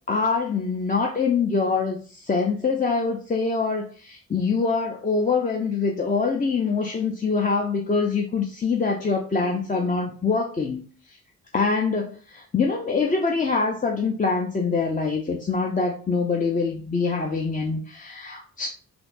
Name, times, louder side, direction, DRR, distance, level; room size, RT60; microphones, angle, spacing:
voice 1, 0.1-10.8 11.1-11.2 11.5-18.7, left 4 dB, 25° left, 0 dB, 0.5 m, -24 dB
3.3 x 2.5 x 2.5 m, 0.40 s
supercardioid pair, 50°, 36 cm